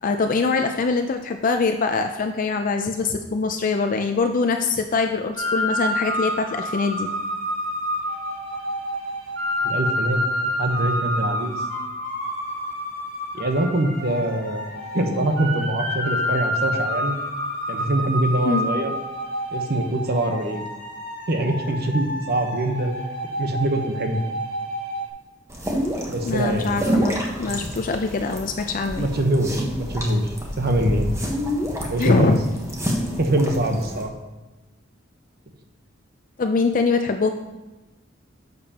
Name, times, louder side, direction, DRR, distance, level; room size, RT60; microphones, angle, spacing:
voice 1, 0.0-7.1 18.4-18.7 26.3-29.1 32.0-32.4 36.4-37.3, left 4 dB, 45° left, 6 dB, 0.5 m, -23 dB
Dizi Flute Melody Pitch Bent, 5.3-25.1, equal, 75° right, 2.9 m, -28 dB
voice 2, 9.6-11.7 13.3-17.1 17.7-18.9 19.5-20.6 21.3-22.9 23.4-24.2 26.0-26.8 29.0-30.3 30.6-31.1 31.9-32.4 33.2-34.1, right 1 dB, 55° right, 4 dB, 1.0 m, -24 dB
sound 1, 25.5-34.0, equal, 15° right, 1.2 m, -28 dB
10.5 x 6.8 x 2.9 m, 1.1 s
head